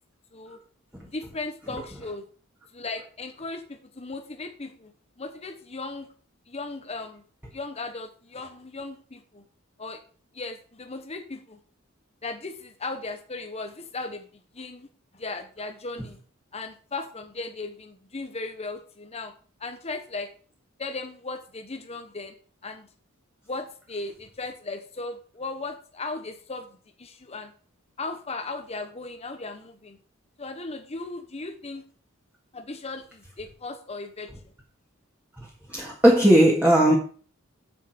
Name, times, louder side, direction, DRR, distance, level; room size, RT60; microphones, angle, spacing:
voice 1, 1.1-2.2 2.7-4.9 5.2-6.1 6.5-7.2 7.5-9.4 9.8-10.0 10.3-11.6 12.2-14.2 14.5-14.9 15.1-16.2 16.5-19.3 19.6-20.3 20.8-22.3 22.6-22.9 23.5-26.7 27.0-27.5 28.0-30.0 30.4-31.8 32.5-34.3, left 3 dB, 30° left, 5 dB, 1.0 m, -36 dB
voice 2, 35.4-37.0, right 1 dB, 10° right, -3 dB, 1.9 m, -18 dB
7.4 x 7.4 x 6.0 m, 0.42 s
head